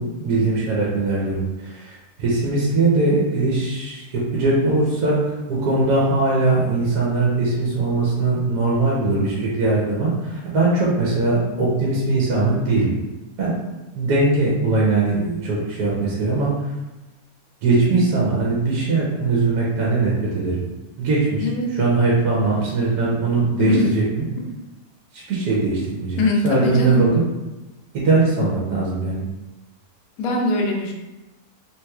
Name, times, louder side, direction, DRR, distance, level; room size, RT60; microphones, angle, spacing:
voice 1, 0.0-12.9 13.4-13.5 13.9-16.7 17.6-20.6 21.0-24.2 25.1-27.1 27.9-29.3, right 3 dB, 70° right, -5 dB, 1.2 m, -21 dB
voice 2, 23.6-23.9 26.2-27.1 30.2-30.9, left 2 dB, 70° left, 0 dB, 1.0 m, -21 dB
3.2 x 2.9 x 2.3 m, 1.1 s
omnidirectional pair, 1.8 m